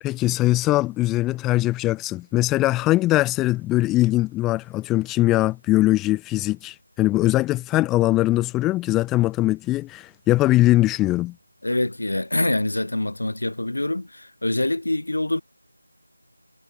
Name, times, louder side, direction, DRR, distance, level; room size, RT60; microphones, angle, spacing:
voice 1, 0.0-11.3, left 17 dB, 5° left, 0.7 m, -21 dB
voice 2, 11.6-15.4, left 1 dB, 70° left, 6.8 m, -25 dB
figure-of-eight pair, 165°, 0 cm